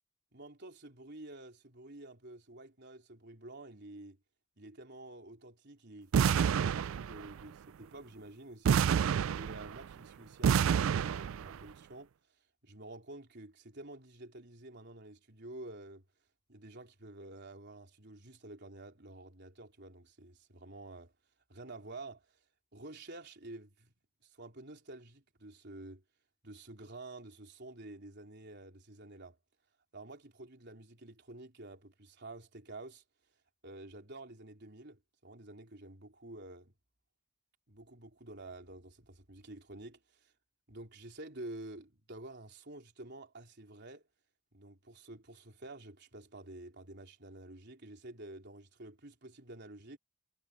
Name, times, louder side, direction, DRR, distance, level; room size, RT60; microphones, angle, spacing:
voice 1, 0.3-4.2 4.6-8.9 9.4-12.1 12.6-16.0 16.5-21.1 21.5-22.4 22.7-23.9 24.2-26.0 26.4-29.4 29.9-33.0 33.6-36.7 37.7-40.3 40.7-44.1 44.5-50.0, right 2 dB, 50° right, 4.0 m, -50 dB
sound 1, 6.1-7.4 8.6-9.9 10.4-11.6, right 7 dB, 70° right, 0.3 m, -28 dB
head